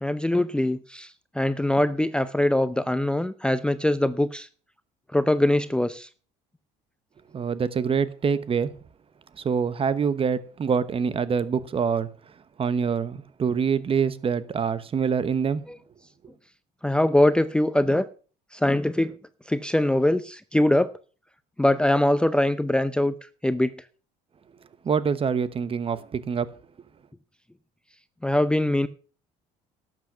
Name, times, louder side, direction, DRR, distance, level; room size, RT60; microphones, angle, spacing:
voice 1, 0.0-1.1 1.4-4.5 5.1-6.1 16.8-18.1 18.5-19.1 19.5-20.9 21.6-23.1 23.4-23.7 28.2-28.9, left 1 dB, 5° left, 0.6 m, -22 dB
voice 2, 7.3-8.7 9.4-12.1 12.6-15.6 24.8-26.5, right 6 dB, 35° right, 1.0 m, -25 dB
11.5 x 7.7 x 5.8 m
supercardioid pair, 90°, 16 cm